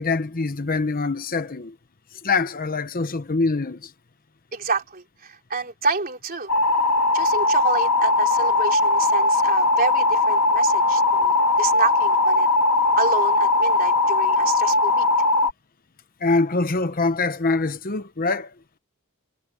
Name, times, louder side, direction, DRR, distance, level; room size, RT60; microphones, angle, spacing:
voice 1, 0.0-1.7 2.2-3.9 16.2-18.5, left 3 dB, 40° left, 1.0 m, -24 dB
voice 2, 4.5-6.5 7.1-12.5 13.0-15.0, right 4 dB, 40° right, 3.2 m, -28 dB
sound 1, 6.5-15.5, left 2 dB, 80° left, 2.5 m, -19 dB
head